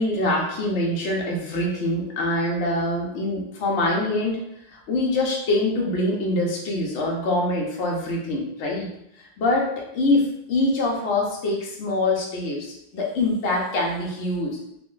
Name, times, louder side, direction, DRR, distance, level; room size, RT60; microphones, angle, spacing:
voice 1, 0.0-14.6, left 2 dB, 60° left, -2 dB, 0.7 m, -24 dB
3.4 x 2.0 x 3.8 m, 0.77 s
omnidirectional pair, 2.2 m